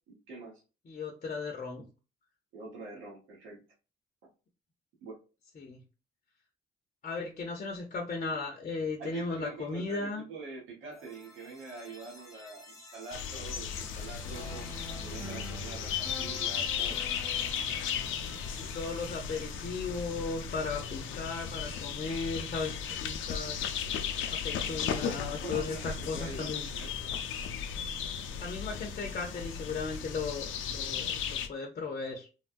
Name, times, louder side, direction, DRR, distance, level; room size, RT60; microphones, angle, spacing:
voice 1, 0.1-0.6 2.5-3.6 5.0-5.2 9.0-17.0 25.3-27.2, right 4 dB, 85° right, -3 dB, 1.2 m, -45 dB
voice 2, 0.9-1.8 5.6-5.8 7.0-10.2 18.5-23.8 24.3-26.7 28.1-32.3, left 4 dB, 40° left, 2 dB, 0.7 m, -36 dB
sound 1, 10.9-20.9, left 2 dB, 15° left, 1.0 m, -48 dB
sound 2, 13.1-31.5, left 8 dB, 80° left, 0.5 m, -36 dB
sound 3, 13.5-31.3, right 2 dB, 55° right, 0.9 m, -52 dB
3.3 x 2.2 x 2.5 m, 0.32 s
cardioid pair, 90°, 20 cm